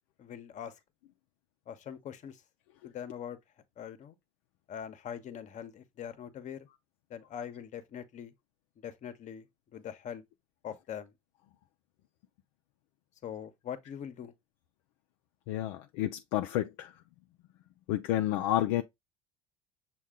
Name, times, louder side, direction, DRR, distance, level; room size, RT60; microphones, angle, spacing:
voice 1, 0.2-0.7 1.7-2.4 2.8-3.4 3.8-4.2 4.7-6.7 7.1-8.3 8.8-10.2 10.6-11.1 13.2-14.3, left 9 dB, 45° left, 0.9 m, -42 dB
voice 2, 15.5-16.9 17.9-18.8, left 13 dB, 70° left, 0.4 m, -30 dB
6.3 x 2.3 x 3.6 m
hypercardioid pair, 70°, 17 cm